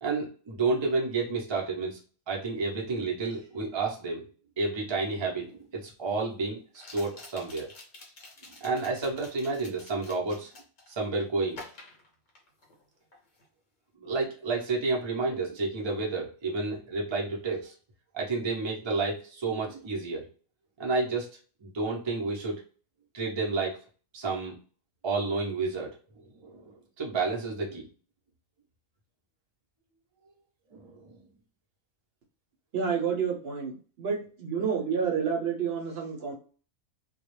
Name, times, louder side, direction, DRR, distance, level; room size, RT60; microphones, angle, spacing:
voice 1, 0.0-2.0 2.3-4.3 4.6-7.7 8.6-10.5 10.9-11.6 14.0-17.7 18.1-20.3 20.8-21.3 21.6-22.6 23.1-23.8 24.1-24.6 25.0-26.0 26.4-27.9 30.7-31.2, right 3 dB, 40° right, -2 dB, 0.3 m, -30 dB
sound 1, 5.1-5.2 6.7-11.0 11.5-12.8 13.1-13.5, left 2 dB, 45° left, 0.7 m, -49 dB
voice 2, 32.7-36.3, right 6 dB, 60° right, 0 dB, 0.8 m, -29 dB
2.3 x 2.0 x 3.0 m, 0.39 s
omnidirectional pair, 1.4 m